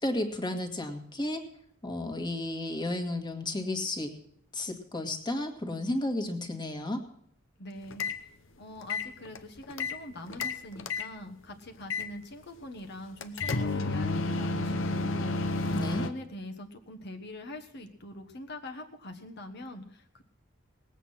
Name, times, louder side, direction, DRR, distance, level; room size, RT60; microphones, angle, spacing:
voice 1, 0.0-1.4 1.8-4.1 4.5-7.0 15.7-16.1, left 1 dB, 20° left, 4 dB, 1.8 m, -32 dB
voice 2, 7.6-8.3 8.6-20.2, left 1 dB, 60° left, 4 dB, 1.3 m, -43 dB
sound 1, 7.9-8.2 8.8-10.0 10.3-11.1 11.9-12.1 13.2-16.1, left 3 dB, 75° left, 0.9 m, -31 dB
19.0 x 8.3 x 5.7 m, 0.66 s
head